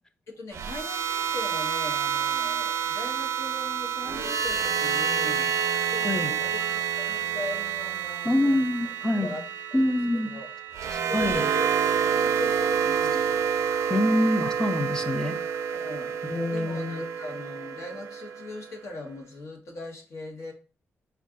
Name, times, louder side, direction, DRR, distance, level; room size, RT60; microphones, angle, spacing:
voice 1, 0.3-5.5 5.9-8.7 9.2-9.4 10.1-10.5 11.0-13.5 15.7-16.2 16.5-20.5, left 2 dB, 70° left, 1 dB, 1.0 m, -39 dB
sound 1, 0.5-18.7, right 8 dB, 80° right, 0.5 m, -28 dB
voice 2, 6.0-6.3 8.2-9.4 9.7-10.3 10.9-11.4 13.9-15.4 16.2-17.1, left 1 dB, 15° left, 9 dB, 0.4 m, -26 dB
4.5 x 2.4 x 3.6 m, 0.36 s
cardioid pair, 115°, 5 cm